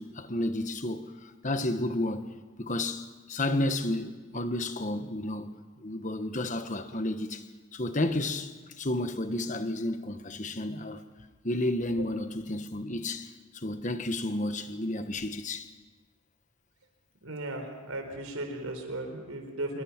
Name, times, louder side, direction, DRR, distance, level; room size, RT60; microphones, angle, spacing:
voice 1, 0.0-2.3 2.6-7.5 7.7-11.0 11.4-15.7, left 1 dB, 35° left, 1.2 m, -32 dB
voice 2, 17.2-19.8, right 1 dB, 75° right, 4.4 m, -36 dB
27.0 x 23.0 x 6.0 m
head